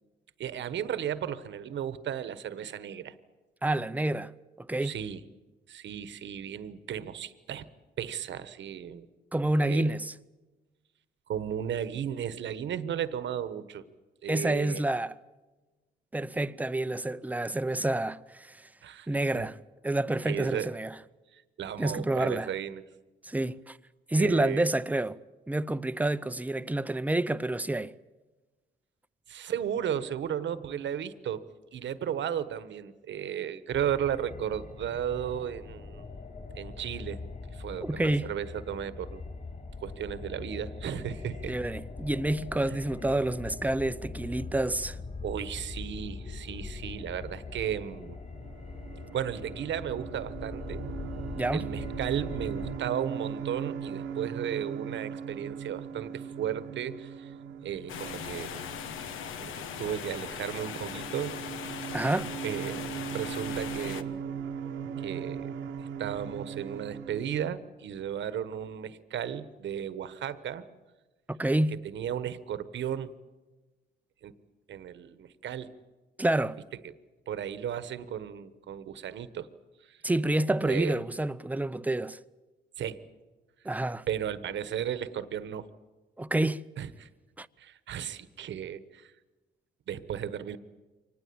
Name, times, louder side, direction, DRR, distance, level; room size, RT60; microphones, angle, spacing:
voice 1, 0.4-3.1 4.8-5.2 5.7-7.7 8.0-9.1 9.6-9.9 11.3-13.8 14.2-14.8 18.8-19.1 19.3-19.5 20.2-20.7 21.3-22.8 24.2-24.7 29.3-36.1 36.6-37.2 37.5-39.2 39.8-41.6 42.7-42.8 45.2-48.2 49.1-50.8 51.5-57.3 57.6-58.6 59.4-59.5 59.8-61.4 62.4-64.2 65.0-65.5 66.0-70.6 71.8-73.1 74.2-74.3 74.7-75.7 76.8-76.9 77.3-79.5 79.8-80.0 80.6-81.0 82.8-83.0 84.1-85.7 86.8-87.1 87.6-89.1 89.9-90.6, right 9 dB, 65° right, 1.3 m, -35 dB
voice 2, 3.6-4.3 4.6-4.9 9.3-10.1 14.3-15.1 16.1-18.7 19.1-19.6 19.8-21.0 21.8-22.5 23.2-23.8 24.1-25.2 25.5-27.9 37.8-38.3 41.5-45.0 51.3-51.6 61.9-62.3 71.3-71.7 76.2-76.6 80.0-82.2 83.6-84.0 86.2-86.6 87.4-87.5, right 1 dB, 10° right, 0.7 m, -28 dB
sound 1, 33.7-52.8, left 4 dB, 40° left, 5.0 m, -42 dB
sound 2, 48.0-67.4, right 7 dB, 90° right, 1.5 m, -39 dB
sound 3, 57.9-64.0, left 8 dB, 85° left, 1.2 m, -39 dB
24.5 x 19.5 x 8.7 m
cardioid pair, 90°, 20 cm